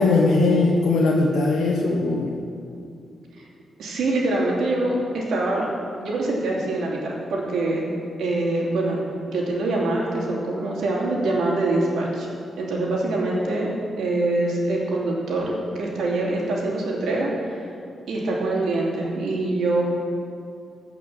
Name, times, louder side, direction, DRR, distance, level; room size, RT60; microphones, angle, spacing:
voice 1, 0.0-2.4, left 3 dB, 90° left, -2 dB, 1.2 m, -19 dB
voice 2, 3.8-5.7 6.0-7.9 8.2-12.3 12.6-13.7 14.0-17.6 18.1-19.8, right 2 dB, 85° right, -3 dB, 3.0 m, -24 dB
16.0 x 5.8 x 7.5 m, 2.5 s
wide cardioid pair, 150°, 0 cm